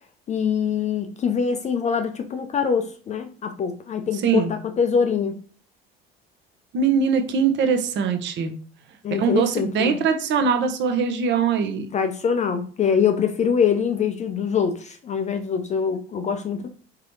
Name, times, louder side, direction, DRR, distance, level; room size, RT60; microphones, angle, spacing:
voice 1, 0.3-5.4 9.0-10.0 11.9-16.7, left 6 dB, 25° left, 0.5 m, -24 dB
voice 2, 6.7-8.5 9.2-11.9, right 6 dB, 40° right, 0.9 m, -22 dB
4.7 x 3.7 x 3.0 m
figure-of-eight pair, 65°, 30 cm